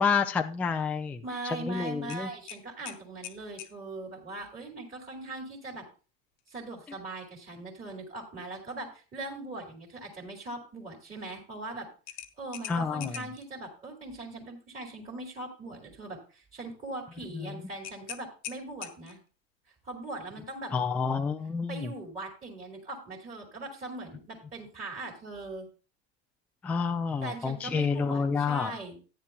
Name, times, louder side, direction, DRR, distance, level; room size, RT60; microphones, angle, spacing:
voice 1, 0.0-1.2 1.6-2.3 12.7-13.2 17.3-17.6 20.7-21.9 26.6-28.7, left 5 dB, 5° left, 6 dB, 0.3 m, -29 dB
voice 2, 1.2-5.9 6.5-11.9 12.4-19.2 19.8-20.7 21.7-25.7 27.2-29.0, right 2 dB, 25° right, -4 dB, 2.7 m, -40 dB
sound 1, 2.1-3.8 6.4-6.6 7.0-7.1 12.1-13.5 17.8-19.3, left 12 dB, 50° left, 1.2 m, -43 dB
13.5 x 9.6 x 2.3 m, 0.35 s
supercardioid pair, 135°, 34 cm